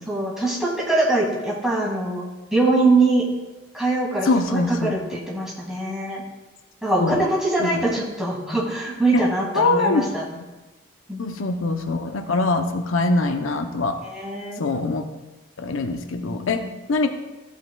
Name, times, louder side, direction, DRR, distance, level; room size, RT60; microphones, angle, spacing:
voice 1, 0.1-2.2 2.5-3.3 3.7-6.2 6.8-10.2 11.1-11.6 14.0-14.6 16.2-16.7, right 2 dB, 5° right, -5 dB, 1.9 m, -23 dB
voice 2, 4.2-5.0 7.0-7.2 7.6-7.9 9.1-9.2 9.5-10.1 10.3-10.4 11.2-14.0 14.6-15.1 15.6-17.1, left 3 dB, 85° left, 7 dB, 0.6 m, -23 dB
13.5 x 8.2 x 2.3 m, 1.1 s
head